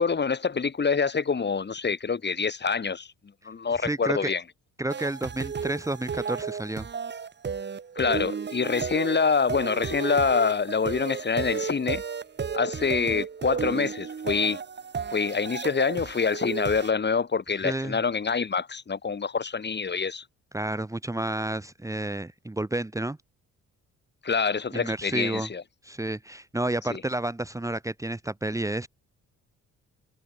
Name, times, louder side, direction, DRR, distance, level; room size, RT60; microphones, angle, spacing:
voice 1, 0.0-3.1 3.4-4.4 8.0-12.0 12.5-14.6 15.1-20.2 24.2-25.6 26.9-27.0, left 5 dB, 35° left, 4.6 m, -26 dB
voice 2, 3.8-4.3 4.8-6.9 17.6-18.0 20.5-23.2 24.7-25.5 25.8-28.9, right 1 dB, 10° right, 1.8 m, -30 dB
sound 1, 4.9-16.9, right 6 dB, 35° right, 1.8 m, -33 dB
cardioid pair, 90°, 30 cm